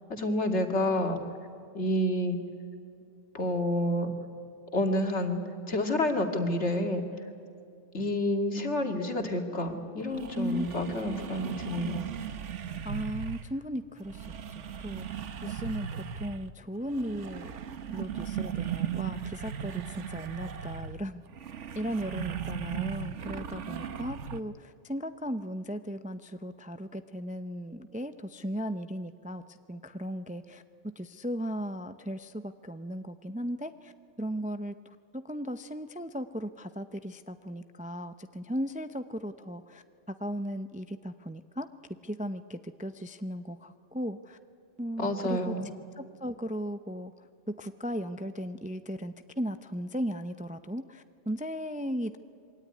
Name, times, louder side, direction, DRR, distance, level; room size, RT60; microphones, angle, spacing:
voice 1, 0.1-1.2 1.7-2.4 3.3-4.1 4.7-5.4 5.7-7.0 7.9-12.1 45.0-45.7, left 1 dB, 70° left, 4 dB, 2.5 m, -29 dB
sound 1, 9.7-9.8 10.1-13.5 14.0-16.5 16.8-24.4, right 8 dB, 80° right, 1.3 m, -37 dB
voice 2, 10.3-10.7 12.8-14.3 14.5-17.5 17.9-21.2 21.7-30.6 31.0-33.9 34.2-41.7 42.0-44.4 44.8-45.5 46.0-47.1 47.6-52.2, equal, 10° right, 10 dB, 0.5 m, -36 dB
26.5 x 23.0 x 9.6 m, 2.4 s
omnidirectional pair, 1.2 m